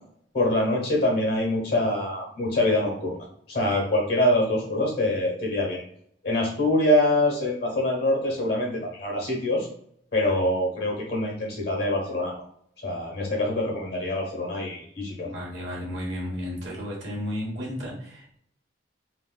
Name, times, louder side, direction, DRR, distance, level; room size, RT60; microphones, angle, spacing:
voice 1, 0.3-3.1 3.5-5.8 6.2-9.7 10.1-12.3 12.8-15.3, left 1 dB, 60° left, -1 dB, 1.3 m, -24 dB
voice 2, 15.2-18.4, equal, 70° right, -3 dB, 1.2 m, -33 dB
3.3 x 2.6 x 2.3 m, 0.66 s
head